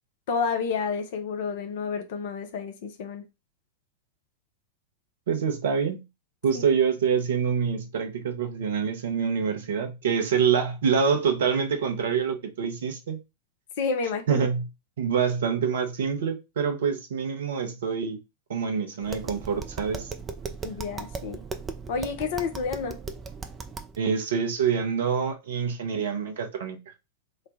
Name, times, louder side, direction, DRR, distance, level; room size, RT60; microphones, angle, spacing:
voice 1, 0.3-3.2 6.5-6.6 13.8-14.5 20.6-21.4 21.9-23.0, left 5 dB, 50° left, 0.6 m, -30 dB
voice 2, 5.3-6.0 6.4-13.2 14.3-14.7 15.0-18.2 18.5-20.1 24.0-26.8, right 6 dB, 60° right, 0.8 m, -26 dB
Tap, 19.0-24.0, right 4 dB, 20° right, 0.5 m, -37 dB
3.2 x 2.2 x 3.8 m
figure-of-eight pair, 90°, 0 cm